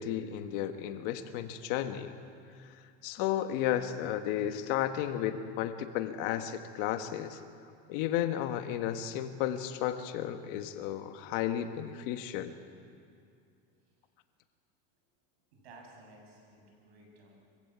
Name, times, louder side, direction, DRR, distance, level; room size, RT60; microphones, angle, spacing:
voice 1, 0.0-2.1 3.0-7.4 7.9-12.5, left 11 dB, 65° left, 8 dB, 1.6 m, -33 dB
voice 2, 15.5-17.4, right 2 dB, 90° right, 1 dB, 7.5 m, -55 dB
25.0 x 15.5 x 8.6 m, 2.4 s
supercardioid pair, 140°, 30 cm